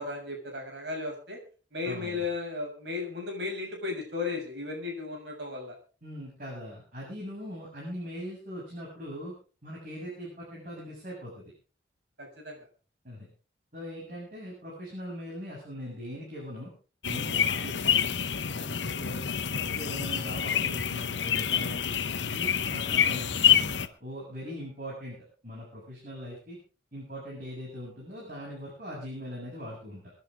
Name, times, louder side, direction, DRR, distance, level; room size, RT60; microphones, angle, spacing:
voice 1, 0.0-1.4 1.7-5.8 12.2-12.7, left 3 dB, 70° right, 2 dB, 6.9 m, -35 dB
voice 2, 1.8-2.3 6.0-9.3 9.6-11.4 13.0-13.3 13.7-16.7 17.0-18.1 18.5-19.2 19.5-26.6 26.9-30.1, equal, 50° right, -4 dB, 7.7 m, -41 dB
sound 1, 17.0-23.9, left 8 dB, 80° left, 0.9 m, -27 dB
26.0 x 10.5 x 3.7 m, 0.36 s
head